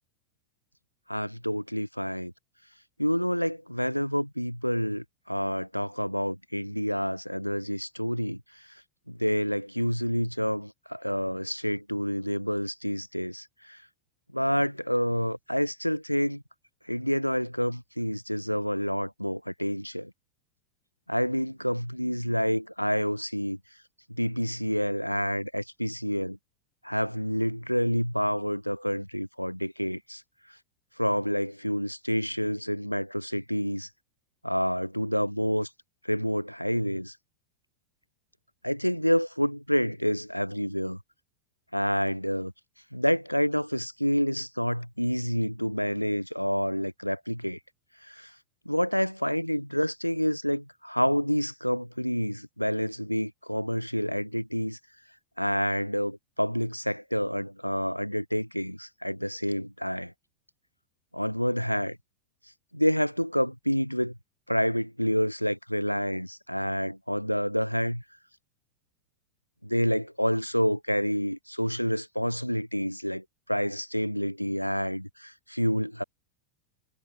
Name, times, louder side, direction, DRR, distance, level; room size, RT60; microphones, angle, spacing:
voice 1, 1.1-2.3 3.0-8.4 9.1-13.8 14.3-16.4 16.9-20.1 21.1-23.6 24.1-26.4 26.8-30.2 31.0-33.9 34.4-35.7 36.0-37.1 38.6-41.0 41.7-42.5 42.9-47.6 48.0-48.3 48.6-54.8 55.4-60.1 61.1-62.0 62.7-64.1 64.5-68.0 69.6-76.0, equal, 90° left, 1.6 m, -28 dB
figure-of-eight pair, 90°, 0 cm